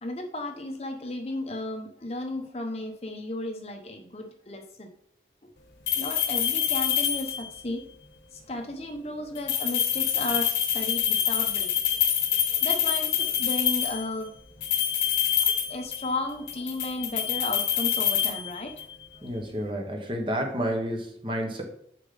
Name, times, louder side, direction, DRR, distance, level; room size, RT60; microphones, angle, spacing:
voice 1, 0.0-4.9 5.9-7.8 8.3-12.0 12.5-14.3 15.4-18.8 19.1-19.2, left 1 dB, 35° left, 4 dB, 0.9 m, -34 dB
sound 1, 5.9-7.6 9.4-14.1 14.6-16.2 16.5-18.9, left 9 dB, 80° left, 1.0 m, -26 dB
voice 2, 19.2-21.6, equal, 30° right, 2 dB, 1.2 m, -30 dB
6.7 x 5.2 x 3.9 m, 0.69 s
head